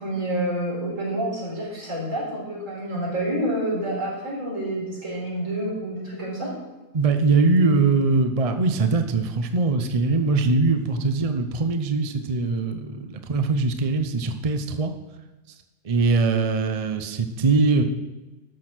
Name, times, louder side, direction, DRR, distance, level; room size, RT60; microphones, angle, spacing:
voice 1, 0.0-6.5, right 1 dB, 60° right, -5 dB, 5.1 m, -28 dB
voice 2, 6.9-14.9 15.8-17.8, right 3 dB, 35° right, 7 dB, 0.6 m, -22 dB
13.5 x 6.3 x 6.1 m, 1.1 s
omnidirectional pair, 1.5 m